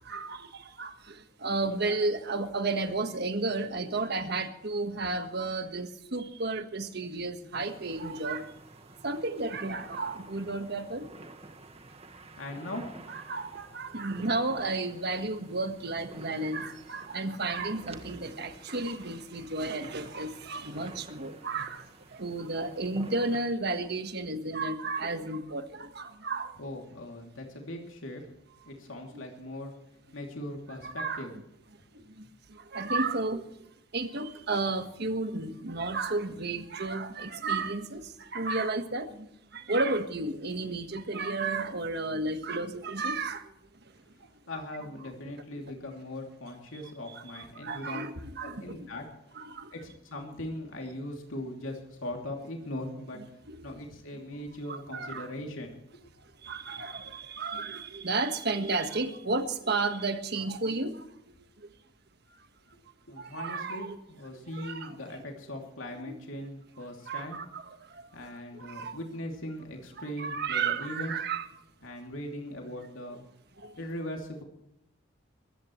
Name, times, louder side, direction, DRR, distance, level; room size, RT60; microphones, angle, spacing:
voice 1, 0.1-8.4 9.0-11.0 13.1-21.8 22.2-26.5 30.8-31.3 32.2-32.3 32.7-33.4 33.9-39.3 39.5-43.4 47.1-48.8 49.4-49.7 53.5-53.6 54.7-55.3 56.4-61.0 63.2-64.0 64.5-64.9 67.1-67.7 68.6-69.0 70.2-71.5 73.6-73.7, right 3 dB, 55° right, 8 dB, 1.5 m, -32 dB
sound 1, 7.6-23.5, right 2 dB, 30° right, 1.5 m, -50 dB
voice 2, 12.4-12.9 26.6-28.3 28.6-29.7 30.1-31.4 44.5-48.1 48.4-49.0 49.7-53.2 53.6-55.8 63.1-67.4 68.1-71.1 71.8-73.2 73.8-74.4, left 1 dB, 85° left, 1 dB, 2.8 m, -40 dB
22.0 x 15.5 x 3.2 m, 0.80 s
head